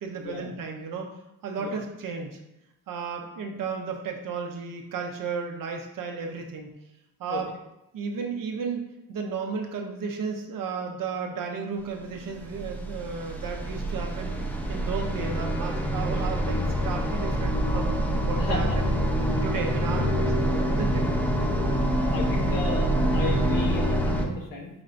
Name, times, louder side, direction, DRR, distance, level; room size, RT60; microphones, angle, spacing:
voice 1, 0.0-1.1 1.4-2.4 2.9-6.7 7.2-7.5 7.9-14.3 14.7-16.6 16.8-17.9 18.2-18.9 19.4-21.0, right 5 dB, 75° right, 2 dB, 0.8 m, -33 dB
sound 1, 12.1-24.3, equal, 5° left, 0.6 m, -26 dB
voice 2, 18.4-18.8 21.8-24.7, left 3 dB, 75° left, -1 dB, 1.1 m, -34 dB
5.1 x 3.2 x 2.5 m, 0.91 s
cardioid pair, 90°, 34 cm